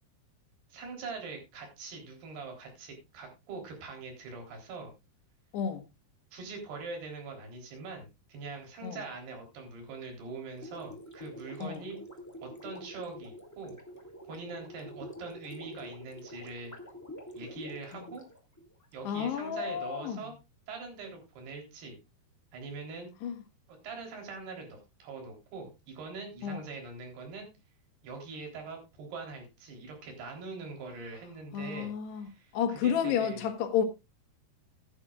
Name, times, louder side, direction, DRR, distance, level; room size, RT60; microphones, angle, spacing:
voice 1, 0.7-4.9 6.3-12.0 12.4-13.8 14.3-16.7 17.4-18.2 18.9-20.4 20.7-22.0 22.5-23.1 23.7-27.5 28.0-33.4, right 4 dB, 70° right, 5.7 m, -43 dB
Gurgling, 10.5-18.9, equal, 10° left, 1.1 m, -47 dB
voice 2, 19.1-20.2 23.2-23.4 26.4-26.6 31.5-33.9, left 8 dB, 80° left, 3.5 m, -31 dB
15.0 x 11.5 x 2.4 m
omnidirectional pair, 4.8 m